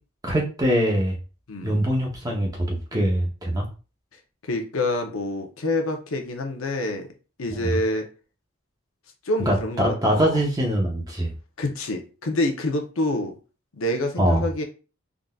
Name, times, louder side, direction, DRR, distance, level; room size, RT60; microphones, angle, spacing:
voice 1, 0.2-1.2 1.6-3.7 7.5-7.8 9.5-11.3 14.2-14.5, equal, 20° right, 0.7 m, -23 dB
voice 2, 1.5-1.8 4.4-7.1 7.4-8.0 9.2-10.4 11.6-13.3 13.8-14.6, left 1 dB, 80° left, 0.7 m, -27 dB
3.7 x 2.5 x 2.3 m
head